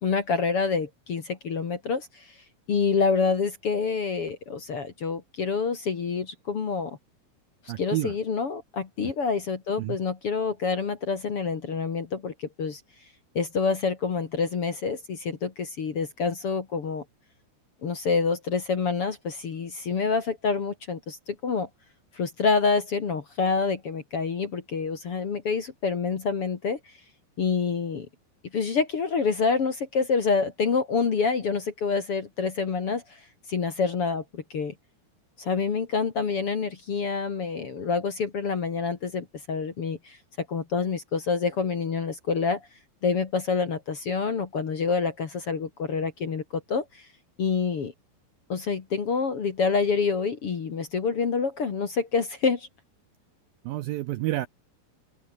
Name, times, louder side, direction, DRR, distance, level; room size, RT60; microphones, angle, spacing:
voice 1, 0.0-2.3 2.7-7.0 7.8-12.8 13.3-17.0 17.8-21.7 22.1-26.9 27.4-28.1 28.5-33.2 33.5-34.7 35.4-42.6 43.0-47.1 47.4-47.9 48.5-52.7, left 5 dB, 45° left, 2.2 m, -27 dB
voice 2, 7.7-8.1 9.0-9.1 9.8-10.0 53.6-54.5, right 16 dB, 80° right, 2.1 m, -29 dB
open air
omnidirectional pair, 4.9 m